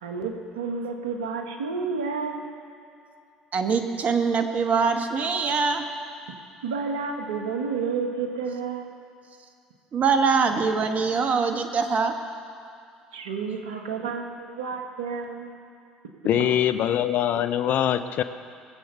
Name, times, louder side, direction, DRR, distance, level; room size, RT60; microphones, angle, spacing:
voice 1, 0.0-2.5 6.6-8.9 13.1-15.5 16.3-16.4, right 5 dB, 85° right, 4 dB, 1.3 m, -30 dB
voice 2, 3.5-5.8 9.9-12.1, right 5 dB, 50° right, 6 dB, 1.5 m, -23 dB
voice 3, 16.2-18.2, left 10 dB, 60° left, 11 dB, 0.7 m, -23 dB
20.5 x 7.8 x 6.8 m, 2.4 s
hypercardioid pair, 65°, 3 cm